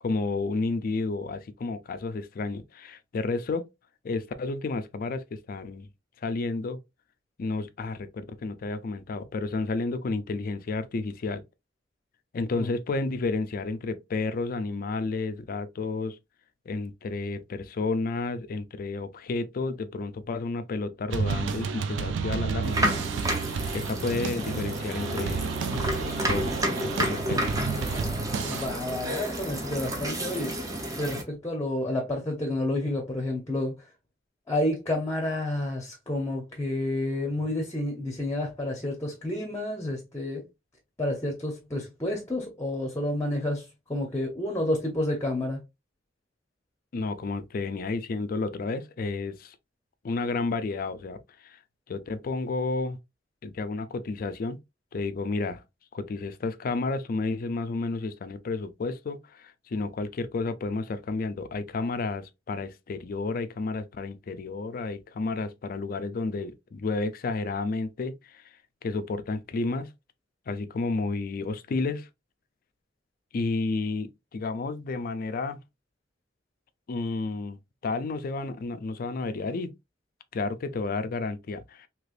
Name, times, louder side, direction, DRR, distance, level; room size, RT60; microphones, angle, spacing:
voice 1, 0.0-3.6 4.0-5.9 6.2-6.8 7.4-11.4 12.3-16.2 16.7-23.0 23.7-27.4 46.9-49.6 50.0-51.6 51.9-53.0 53.4-54.6 54.9-55.6 55.9-68.5 68.8-69.9 70.5-72.1 73.3-75.6 76.9-77.6 77.8-79.7 80.3-81.9, left 3 dB, 50° left, 0.4 m, -31 dB
sound 1, 21.1-28.7, right 5 dB, 80° right, 0.4 m, -31 dB
sound 2, 22.6-31.2, equal, 20° right, 0.7 m, -31 dB
sound 3, 24.6-30.1, right 2 dB, 60° right, 0.9 m, -44 dB
voice 2, 28.4-30.7 30.9-33.8 34.5-40.4 41.0-43.6 43.9-45.6, left 1 dB, 15° left, 0.8 m, -30 dB
3.2 x 2.9 x 2.4 m
head